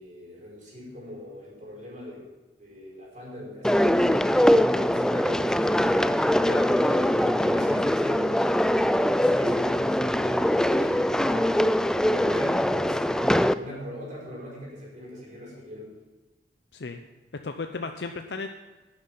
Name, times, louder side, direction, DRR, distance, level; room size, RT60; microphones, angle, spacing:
voice 1, 0.0-2.3 2.6-4.3 4.7-6.2 6.8-10.9 12.1-15.9, left 1 dB, 45° right, -5 dB, 5.2 m, -41 dB
sound 1, 3.6-13.5, equal, 5° left, 0.3 m, -22 dB
voice 2, 11.1-11.5 16.7-17.0 17.4-18.5, left 3 dB, 70° left, 6 dB, 0.7 m, -35 dB
11.5 x 9.9 x 5.7 m, 1.2 s
head